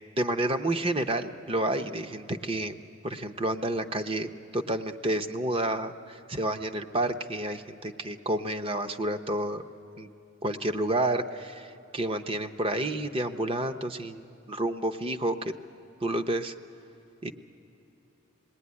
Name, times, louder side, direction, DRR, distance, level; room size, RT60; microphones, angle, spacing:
voice 1, 0.2-2.8 3.0-9.6 10.0-10.1 10.4-14.2 14.5-15.5 16.0-16.5 17.2-17.3, right 1 dB, 25° right, 8 dB, 0.7 m, -30 dB
25.0 x 19.5 x 9.6 m, 2.9 s
head